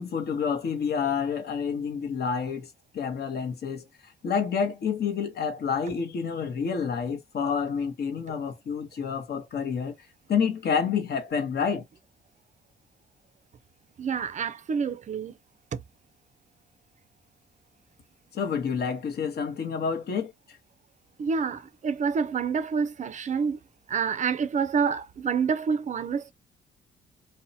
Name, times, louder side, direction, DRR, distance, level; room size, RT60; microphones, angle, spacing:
voice 1, 0.0-2.7 2.9-3.8 4.2-9.9 10.3-11.8 18.3-20.3, left 6 dB, 55° left, 0.9 m, -28 dB
voice 2, 14.0-15.3 15.7-15.8 21.2-23.6 23.9-26.3, right 6 dB, 40° right, 0.4 m, -27 dB
2.7 x 2.1 x 2.6 m
cardioid pair, 90°, 20 cm